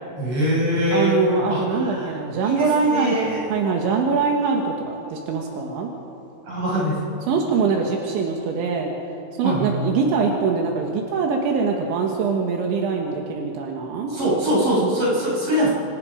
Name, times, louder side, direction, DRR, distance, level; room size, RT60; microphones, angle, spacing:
voice 1, 0.2-1.2 1.5-3.5 6.5-7.0 9.4-9.7 14.1-15.7, right 1 dB, 30° right, -5 dB, 7.6 m, -23 dB
voice 2, 0.9-5.9 7.3-8.9 9.4-14.1, right 5 dB, 80° right, 1 dB, 3.9 m, -23 dB
26.5 x 26.0 x 5.1 m, 2.8 s
omnidirectional pair, 5.3 m